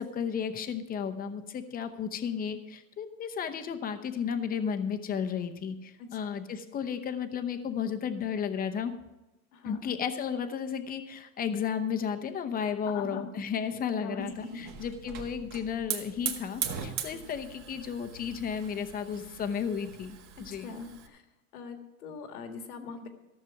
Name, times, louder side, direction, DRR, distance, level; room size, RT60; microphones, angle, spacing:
voice 1, 0.0-8.9 9.6-20.7, left 7 dB, 20° left, 8 dB, 0.8 m, -33 dB
voice 2, 12.9-13.4 14.0-14.6 20.5-21.2 21.5-23.1, left 4 dB, 80° left, 6 dB, 1.9 m, -42 dB
Hiss / Fire, 14.2-21.1, right 7 dB, 40° right, 1.6 m, -40 dB
14.0 x 6.7 x 5.8 m, 1.0 s
supercardioid pair, 135°, 44 cm